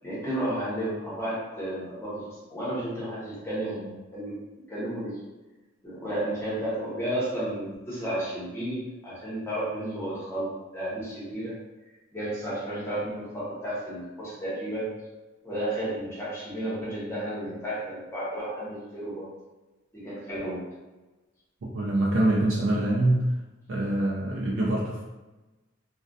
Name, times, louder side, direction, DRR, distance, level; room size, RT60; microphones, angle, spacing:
voice 1, 0.0-4.4 4.7-5.2 5.8-11.6 12.1-14.9 15.4-19.3 19.9-20.7, right 1 dB, 15° left, -9 dB, 0.9 m, -32 dB
voice 2, 21.6-23.3 23.7-25.0, right 1 dB, 75° right, -5 dB, 0.4 m, -25 dB
2.3 x 2.2 x 2.5 m, 1.1 s
head